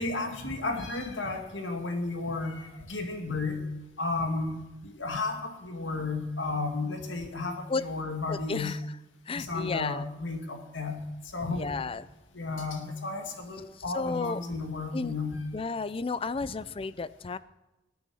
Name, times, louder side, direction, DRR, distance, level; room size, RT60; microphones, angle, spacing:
voice 1, 0.0-3.6 4.0-8.8 9.3-11.0 11.3-11.7 12.3-15.4, left 3 dB, 85° left, 4 dB, 2.1 m, -33 dB
voice 2, 8.3-8.9 9.3-10.0 11.5-12.1 13.9-14.4 14.9-15.1 15.5-17.4, left 4 dB, 30° left, 17 dB, 0.4 m, -32 dB
19.0 x 8.6 x 6.3 m, 1.0 s
head